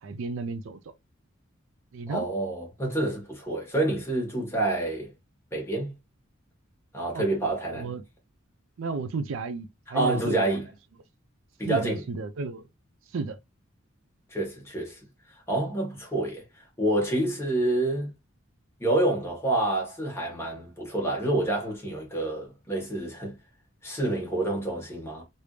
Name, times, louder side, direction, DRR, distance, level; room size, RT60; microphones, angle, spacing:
voice 1, 0.0-0.9 1.9-2.3 7.1-7.3 7.7-8.0 8.8-10.6 11.6-12.7 13.1-13.4, right 4 dB, 70° right, 0.4 m, -33 dB
voice 2, 2.1-5.1 5.5-5.9 6.9-7.9 9.9-10.7 11.6-12.0 14.3-15.0 15.5-18.1 18.8-23.4 23.8-25.2, right 2 dB, 10° left, 1.5 m, -28 dB
3.3 x 2.6 x 3.1 m
head